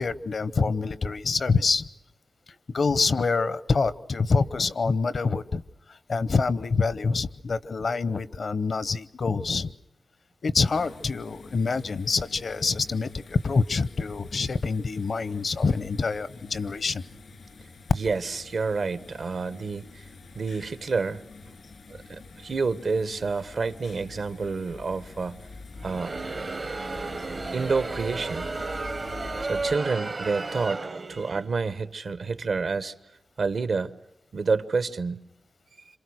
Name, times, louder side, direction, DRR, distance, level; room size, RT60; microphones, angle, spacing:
voice 1, 0.0-1.8 2.7-5.6 6.1-9.7 10.4-17.0, left 4 dB, 70° left, 16 dB, 0.9 m, -26 dB
sound 1, 10.6-29.8, left 3 dB, 90° left, 2.5 m, -46 dB
voice 2, 17.9-20.0 20.3-21.2 21.9-25.4 25.8-26.2 27.5-28.5 29.4-32.9 33.4-33.9 34.3-35.2, right 4 dB, 75° right, 12 dB, 1.2 m, -29 dB
Crowd, 25.8-31.5, right 3 dB, 45° right, 0.8 m, -33 dB
27.0 x 26.5 x 6.4 m, 0.89 s
wide cardioid pair, 90°, 0 cm